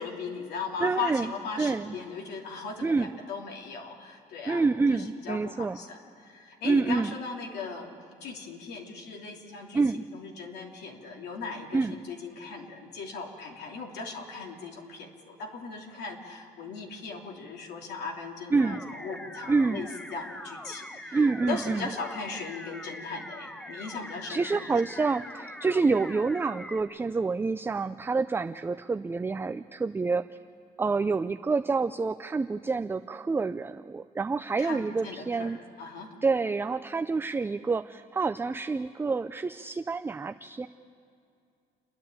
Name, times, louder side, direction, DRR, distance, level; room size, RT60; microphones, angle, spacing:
voice 1, 0.0-7.9 8.2-24.8 34.6-36.2, left 4 dB, 75° left, 0 dB, 3.1 m, -38 dB
voice 2, 0.8-1.3 1.6-2.0 2.8-3.1 4.5-5.8 6.6-7.1 9.7-10.0 11.7-11.9 18.5-18.8 19.5-19.9 21.1-21.9 23.8-23.9 24.3-30.2 30.8-35.6 36.2-40.7, right 4 dB, 15° right, 9 dB, 0.4 m, -27 dB
sound 1, 18.6-26.8, left 1 dB, 5° left, 1.0 m, -43 dB
29.5 x 10.5 x 8.7 m, 2.4 s
cardioid pair, 110°, 17 cm